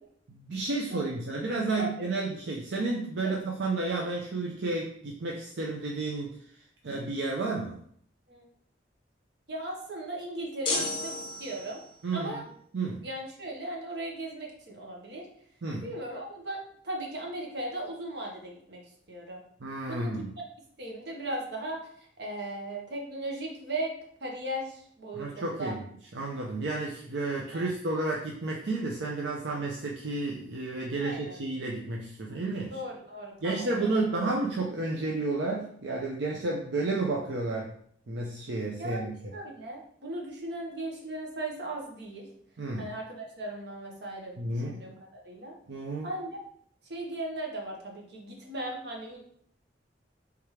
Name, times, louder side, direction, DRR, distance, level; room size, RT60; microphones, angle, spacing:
voice 1, 0.3-6.4 6.8-7.8 12.0-12.3 12.7-13.1 15.6-15.9 19.6-20.3 25.1-25.8 26.1-32.8 33.4-37.8 38.1-39.2 42.6-42.9 44.4-44.8 45.7-46.1, right 2 dB, 80° right, -1 dB, 0.6 m, -31 dB
voice 2, 9.5-11.8 12.1-12.4 13.0-15.3 15.8-16.6 16.8-18.8 19.1-19.4 19.9-20.2 20.8-23.9 24.2-25.7 27.5-27.6 31.0-31.4 32.7-33.9 38.8-42.3 42.8-45.6 46.0-46.4 46.8-49.2, right 1 dB, 65° right, 0 dB, 1.2 m, -37 dB
sound 1, 10.6-12.0, left 3 dB, 30° left, 0.8 m, -33 dB
3.5 x 3.2 x 4.8 m, 0.63 s
head